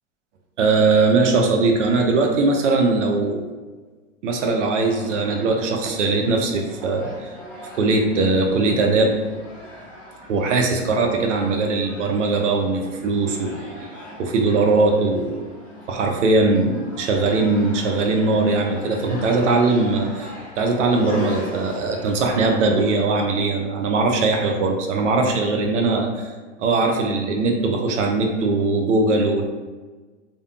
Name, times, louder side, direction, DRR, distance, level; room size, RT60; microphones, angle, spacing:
voice 1, 0.6-3.4 4.2-7.3 7.7-9.1 10.3-13.9 14.2-15.4 15.9-26.3 26.6-29.4, right 3 dB, 75° right, 2 dB, 0.6 m, -20 dB
sound 1, 4.4-23.0, equal, 5° left, 0.4 m, -39 dB
2.5 x 2.1 x 2.4 m, 1.3 s
hypercardioid pair, 115°, 37 cm